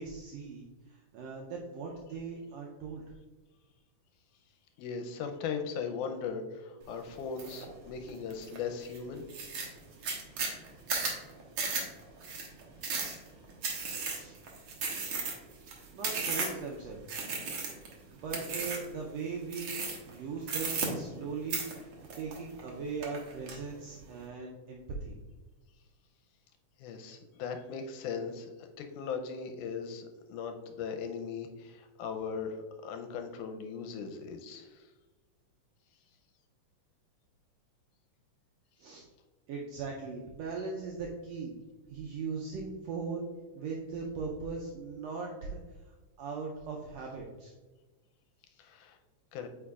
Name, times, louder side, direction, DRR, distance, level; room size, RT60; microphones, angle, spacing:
voice 1, 0.0-3.0 14.0-14.4 15.9-17.0 18.2-19.8 20.1-21.9 22.2-25.2 38.8-39.0 39.5-41.5 41.9-43.3 43.5-45.6 45.8-47.5, right 4 dB, 85° right, -1 dB, 1.5 m, -39 dB
voice 2, 4.8-9.2 26.8-34.9 48.6-49.0 49.3-49.5, left 6 dB, 85° left, 6 dB, 2.0 m, -38 dB
sound 1, 7.4-7.6 8.1-8.6 8.9-9.0 9.3-16.7 17.1-17.9 18.3-18.9 19.5-20.1 20.4-21.2 21.5-22.7 23.0-23.6, right 4 dB, 65° right, 1.3 m, -35 dB
8.6 x 4.8 x 2.3 m, 1.2 s
omnidirectional pair, 3.6 m